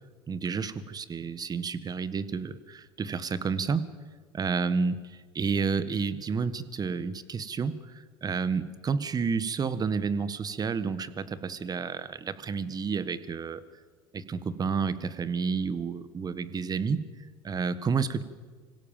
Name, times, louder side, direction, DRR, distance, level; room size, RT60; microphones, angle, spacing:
voice 1, 0.3-3.9 4.3-13.6 14.1-17.1 17.4-18.2, right 5 dB, 30° right, 14 dB, 1.5 m, -30 dB
26.0 x 17.0 x 7.4 m, 1.5 s
hypercardioid pair, 80°, 13 cm